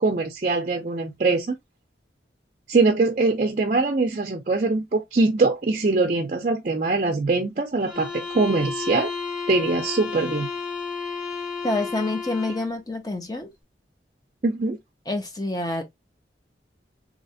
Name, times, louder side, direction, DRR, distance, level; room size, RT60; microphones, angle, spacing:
voice 1, 0.0-1.5 2.7-9.1 9.5-10.5 14.4-14.8, right 3 dB, 45° right, 0.5 m, -22 dB
sound 1, 7.8-12.8, left 5 dB, 5° right, 0.9 m, -32 dB
voice 2, 11.6-13.5 15.1-15.8, left 2 dB, 20° left, 0.7 m, -27 dB
3.2 x 2.8 x 2.6 m
head